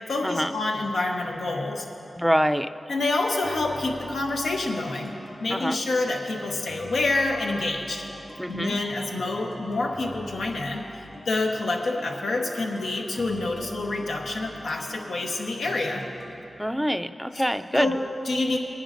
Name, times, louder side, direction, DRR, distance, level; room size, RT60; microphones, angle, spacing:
voice 1, 0.0-1.9 2.9-5.1 5.4-8.0 8.5-16.0 17.7-18.6, left 2 dB, 85° left, 1 dB, 1.0 m, -27 dB
voice 2, 2.2-2.7 5.5-5.8 8.4-8.8 16.6-17.9, equal, ahead, 10 dB, 0.4 m, -25 dB
sound 1, 3.4-16.4, left 1 dB, 65° left, 1.3 m, -44 dB
20.5 x 10.0 x 2.6 m, 2.9 s
cardioid pair, 50°, 0 cm